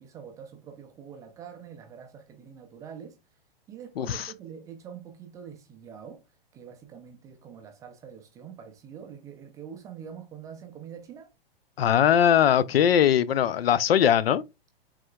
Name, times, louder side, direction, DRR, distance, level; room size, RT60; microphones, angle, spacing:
voice 1, 0.0-3.2 3.7-6.2 6.5-11.3, right 8 dB, 10° right, 0.3 m, -45 dB
voice 2, 4.0-4.3 11.8-14.4, left 9 dB, 75° left, 0.5 m, -21 dB
4.8 x 3.6 x 2.2 m
hypercardioid pair, 120°, 31 cm